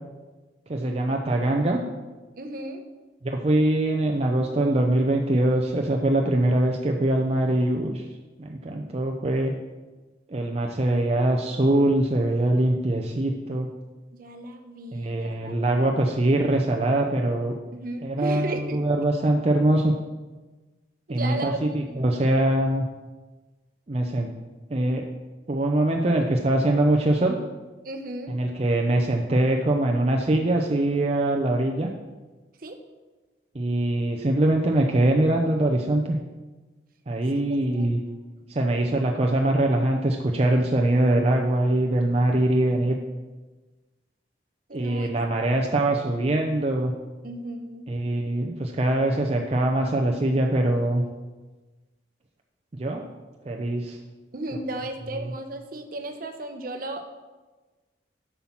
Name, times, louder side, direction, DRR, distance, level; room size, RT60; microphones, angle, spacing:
voice 1, 0.7-1.8 3.2-8.1 8.4-9.5 10.3-13.7 14.9-17.5 18.0-19.9 21.1-22.9 23.9-24.3 24.7-25.0 25.5-27.4 28.3-31.9 33.5-36.2 37.1-38.0 38.5-43.0 44.7-46.9 47.9-51.0 52.7-53.0 53.5-54.0 55.2-55.3, right 1 dB, 35° right, 1 dB, 0.6 m, -23 dB
voice 2, 2.4-2.8 14.1-15.6 17.7-18.8 21.1-21.6 21.9-22.1 27.8-28.4 32.6-32.8 37.5-37.9 38.5-38.6 44.7-45.1 47.2-47.9 54.3-57.1, right 1 dB, 55° right, 6 dB, 0.9 m, -35 dB
7.8 x 5.7 x 6.0 m, 1.2 s
head